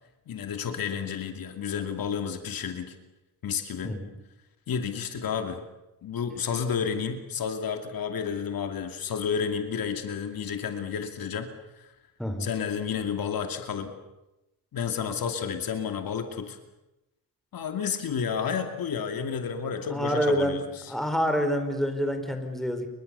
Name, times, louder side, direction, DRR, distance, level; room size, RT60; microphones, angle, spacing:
voice 1, 0.3-2.9 3.4-4.0 4.7-5.6 6.0-11.5 11.8-11.9 12.4-13.9 14.7-16.6 17.5-20.6, left 7 dB, 75° left, 5 dB, 2.7 m, -31 dB
voice 2, 12.2-12.5 19.9-20.6 20.9-22.9, equal, ahead, 6 dB, 4.7 m, -27 dB
30.0 x 23.5 x 7.0 m, 0.98 s
cardioid pair, 95°, 35 cm